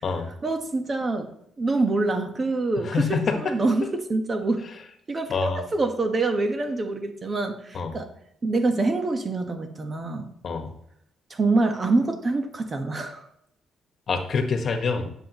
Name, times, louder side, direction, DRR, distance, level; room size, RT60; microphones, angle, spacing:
voice 1, 0.4-1.3 1.6-4.6 5.1-8.1 8.4-10.3 11.3-13.2, right 3 dB, 30° right, 6 dB, 1.2 m, -25 dB
voice 2, 2.8-3.5 3.8-3.9 5.3-5.7 7.7-8.0 10.4-10.7 14.1-15.1, left 5 dB, 50° left, 6 dB, 1.4 m, -26 dB
10.0 x 7.1 x 3.0 m, 0.73 s
cardioid pair, 90°, 0 cm